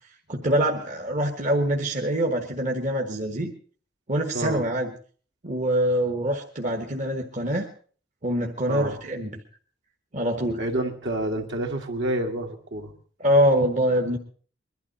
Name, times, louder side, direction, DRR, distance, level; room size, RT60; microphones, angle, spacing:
voice 1, 0.3-3.5 4.1-4.9 5.4-7.7 8.2-9.3 10.1-10.6 13.2-14.2, equal, 45° right, 3 dB, 1.3 m, -24 dB
voice 2, 4.3-4.6 8.7-9.0 10.6-12.9, right 1 dB, 70° right, 2 dB, 2.2 m, -28 dB
22.0 x 12.0 x 4.2 m, 0.43 s
head